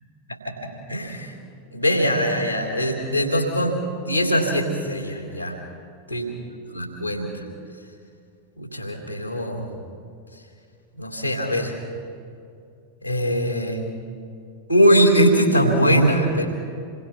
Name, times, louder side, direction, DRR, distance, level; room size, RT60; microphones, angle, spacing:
voice 1, 0.3-1.3 1.7-5.5 6.1-6.3 6.7-7.4 8.6-9.7 11.0-11.7 13.0-13.8 14.7-16.5, equal, 90° right, 2 dB, 3.2 m, -21 dB
28.0 x 21.5 x 5.8 m, 2.4 s
figure-of-eight pair, 90°, 0 cm